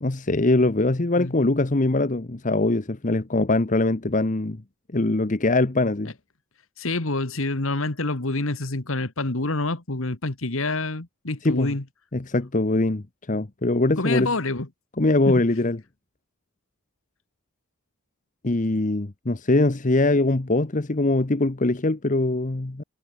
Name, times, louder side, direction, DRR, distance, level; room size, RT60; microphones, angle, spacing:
voice 1, 0.0-4.6 4.9-6.1 11.4-11.7 12.1-14.3 15.0-15.8 18.4-22.8, left 2 dB, 35° left, 0.9 m, -22 dB
voice 2, 6.8-11.8 14.0-14.7 15.3-15.4, left 2 dB, 65° left, 1.8 m, -27 dB
head